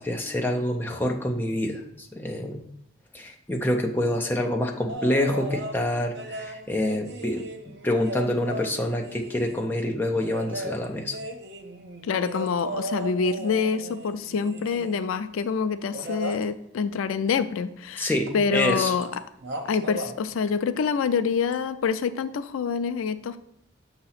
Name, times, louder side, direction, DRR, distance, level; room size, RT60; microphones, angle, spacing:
voice 1, 0.0-2.6 3.1-7.4 7.8-11.2 18.0-18.9, left 1 dB, 10° left, 2 dB, 0.5 m, -27 dB
sound 1, 4.9-5.8 6.1-9.7 10.2-15.1 15.9-16.4 18.3-18.4 18.7-19.1 19.4-20.1 21.5-21.6, right 1 dB, 55° right, 0.6 m, -36 dB
voice 2, 12.0-19.2 19.6-23.4, left 5 dB, 90° left, 12 dB, 0.4 m, -26 dB
6.6 x 2.9 x 5.6 m, 0.74 s
head